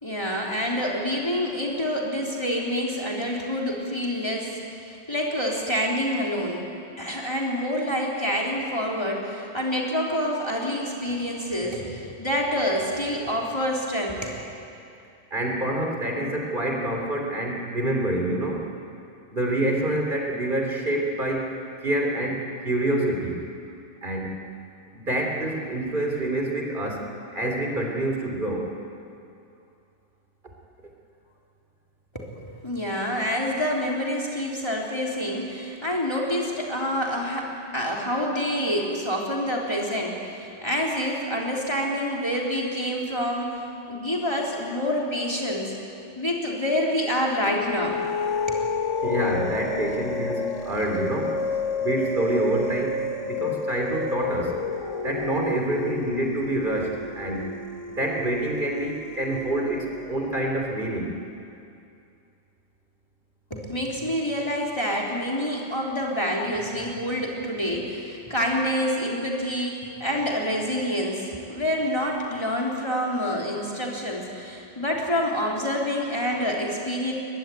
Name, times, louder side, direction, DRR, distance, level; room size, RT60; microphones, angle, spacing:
voice 1, 0.0-6.6 7.0-14.4 32.1-43.6 43.9-45.8 46.2-48.0 48.5-48.7 63.5-77.1, equal, 20° left, -3 dB, 3.7 m, -27 dB
voice 2, 15.3-18.6 19.3-21.5 21.8-23.4 24.0-24.5 24.9-27.1 27.3-28.7 49.0-51.4 51.8-54.5 55.0-57.6 57.9-61.1, right 1 dB, 45° right, 0 dB, 3.4 m, -27 dB
sound 1, 47.5-60.3, left 3 dB, 90° left, 1.7 m, -30 dB
23.0 x 21.5 x 9.3 m, 2.6 s
omnidirectional pair, 1.2 m